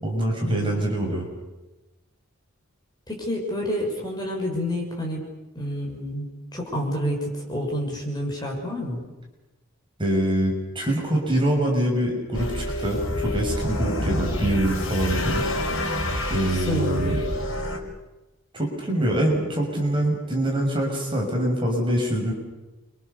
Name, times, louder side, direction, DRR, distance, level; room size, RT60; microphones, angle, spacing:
voice 1, 0.0-1.3 10.0-15.4 16.3-17.2 18.5-22.3, right 1 dB, 25° right, 0 dB, 6.2 m, -24 dB
voice 2, 3.1-5.2 5.5-9.0 16.7-17.2, equal, 20° left, -1 dB, 6.4 m, -28 dB
sound 1, 12.3-17.8, left 1 dB, 65° left, 4.9 m, -27 dB
29.5 x 25.5 x 7.0 m, 1.1 s
head